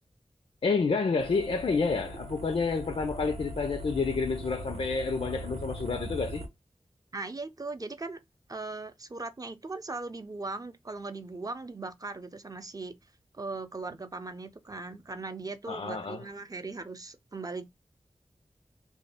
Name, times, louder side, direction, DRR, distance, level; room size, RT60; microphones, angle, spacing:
voice 1, 0.6-6.4 15.7-16.2, left 4 dB, 65° left, 0.4 m, -29 dB
sound 1, 1.2-6.5, right 1 dB, 80° right, 0.8 m, -40 dB
voice 2, 7.1-8.2 8.5-13.0 13.3-17.6, right 3 dB, 35° right, 0.5 m, -39 dB
2.6 x 2.3 x 3.3 m
wide cardioid pair, 55°, 11 cm